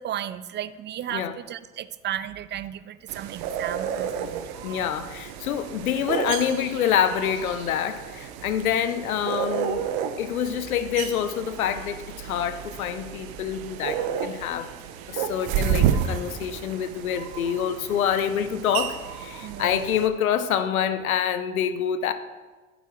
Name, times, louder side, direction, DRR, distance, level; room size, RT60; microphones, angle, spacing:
voice 1, 0.0-4.8 19.4-19.8, right 11 dB, 30° right, 0.3 m, -34 dB
sound 1, 3.1-20.1, right 9 dB, 60° right, 0.9 m, -31 dB
voice 2, 4.6-9.9 10.2-14.7 15.1-22.1, left 9 dB, 90° left, 0.7 m, -26 dB
11.0 x 9.2 x 3.1 m
hypercardioid pair, 65°, 41 cm